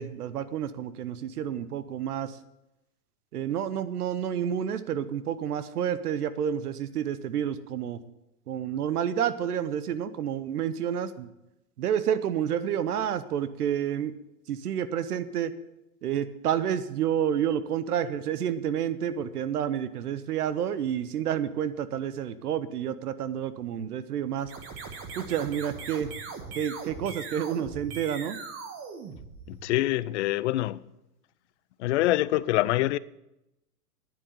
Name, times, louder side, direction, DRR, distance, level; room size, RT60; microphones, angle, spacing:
voice 1, 0.0-2.4 3.3-8.0 8.5-11.3 11.8-14.1 14.5-15.5 16.0-24.5 25.2-26.1 26.5-28.4, right 9 dB, 75° right, 1.0 m, -29 dB
sound 1, 24.4-29.9, right 5 dB, 30° right, 1.6 m, -40 dB
voice 2, 29.5-30.8 31.8-33.0, left 16 dB, 50° left, 0.5 m, -25 dB
10.0 x 7.5 x 9.4 m
hypercardioid pair, 135°, 46 cm